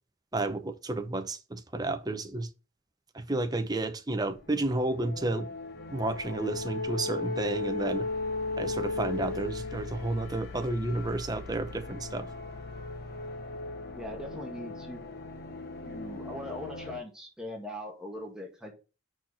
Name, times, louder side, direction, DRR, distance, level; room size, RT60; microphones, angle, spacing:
voice 1, 0.3-2.5 3.1-5.5 5.9-8.1 8.6-12.3, right 2 dB, 20° right, 0.7 m, -31 dB
sound 1, 4.3-17.0, left 3 dB, 50° left, 1.0 m, -37 dB
voice 2, 13.9-15.0 15.8-18.7, left 1 dB, 5° right, 1.8 m, -40 dB
6.0 x 4.6 x 5.7 m
head